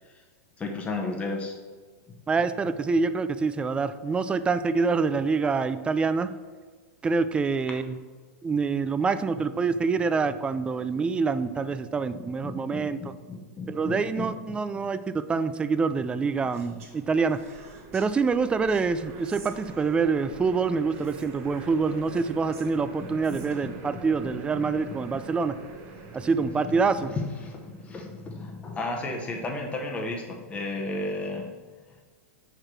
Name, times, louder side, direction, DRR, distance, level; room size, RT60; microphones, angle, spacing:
voice 1, 0.6-1.5 12.1-14.9 23.3-24.0 24.5-25.2 26.0-26.3 26.6-26.7 27.1-31.5, left 2 dB, 15° left, 0 dB, 0.9 m, -34 dB
voice 2, 2.3-6.3 7.0-8.0 8.4-13.1 13.7-15.0 15.3-17.4 17.9-25.6 26.1-27.1, right 4 dB, 15° right, 12 dB, 0.3 m, -26 dB
Speech, 16.5-18.1 18.7-20.1 20.9-23.8, right 4 dB, 75° right, 1.7 m, -52 dB
sound 1, 16.6-28.0, right 3 dB, 40° right, 1.1 m, -45 dB
4.9 x 4.7 x 5.9 m, 1.4 s
hypercardioid pair, 130°, 8 cm